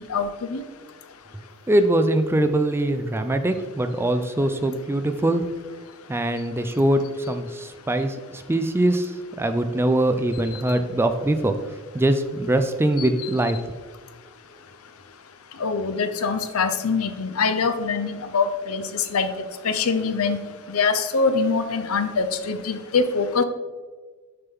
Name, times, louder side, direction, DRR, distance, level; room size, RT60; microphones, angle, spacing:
voice 1, 0.1-0.6 15.6-19.3 19.6-20.4 20.7-23.4, left 4 dB, 75° left, 9 dB, 0.6 m, -23 dB
voice 2, 1.7-5.4 6.1-11.6 11.9-13.6, right 1 dB, 10° right, 8 dB, 0.4 m, -22 dB
6.6 x 6.0 x 3.6 m, 1.4 s
head